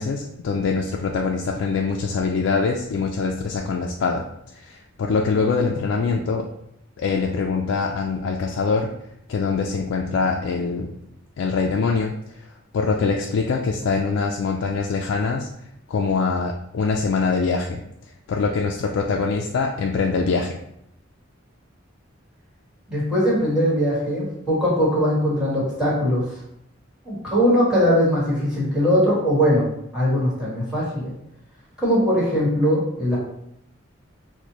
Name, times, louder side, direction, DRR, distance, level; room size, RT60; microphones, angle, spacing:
voice 1, 0.0-4.2 4.5-6.5 7.0-8.9 9.3-10.9 11.4-12.1 12.7-15.5 15.9-17.8 18.3-20.5, left 4 dB, 75° left, 1 dB, 0.3 m, -23 dB
voice 2, 22.9-26.4 27.0-29.6 29.9-31.1 31.8-33.2, equal, 5° right, -7 dB, 1.4 m, -20 dB
4.2 x 2.1 x 3.0 m, 0.76 s
head